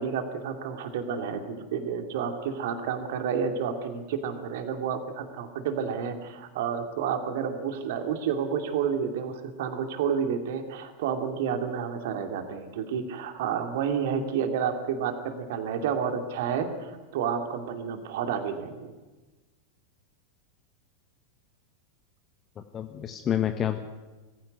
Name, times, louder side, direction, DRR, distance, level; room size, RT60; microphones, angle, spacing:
voice 1, 0.0-18.9, right 7 dB, 55° right, 6 dB, 2.6 m, -30 dB
voice 2, 22.6-23.8, left 10 dB, 25° left, 7 dB, 1.3 m, -29 dB
21.0 x 15.5 x 9.6 m, 1.2 s
figure-of-eight pair, 90°, 0 cm